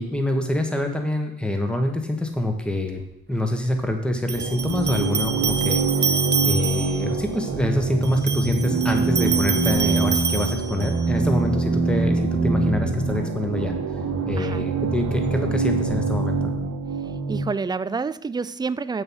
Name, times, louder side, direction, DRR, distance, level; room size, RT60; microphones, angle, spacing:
voice 1, 0.0-3.0 3.3-5.9 6.4-13.8 14.3-16.5, left 1 dB, 5° left, 4 dB, 1.5 m, -25 dB
sound 1, 3.0-3.1 4.3-7.1 8.0-11.1, right 7 dB, 35° right, 0.9 m, -27 dB
sound 2, 4.3-17.5, right 3 dB, 70° right, 1.5 m, -24 dB
voice 2, 14.4-14.7 17.3-19.0, right 4 dB, 15° right, 16 dB, 0.3 m, -28 dB
7.7 x 6.6 x 6.3 m, 0.81 s
cardioid pair, 90°, 30 cm